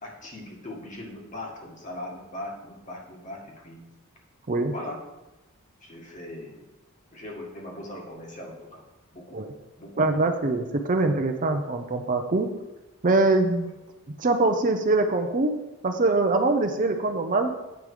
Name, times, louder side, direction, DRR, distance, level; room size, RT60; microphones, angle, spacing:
voice 1, 0.0-3.8 4.7-5.1 5.8-6.6 7.1-8.8 9.1-9.4 9.8-10.2 13.6-13.7, left 1 dB, 35° left, -1 dB, 1.7 m, -40 dB
voice 2, 10.0-12.5 13.0-13.7 14.2-15.5 15.8-17.5, right 2 dB, 35° right, 6 dB, 0.6 m, -23 dB
9.0 x 5.3 x 4.8 m, 1.0 s
head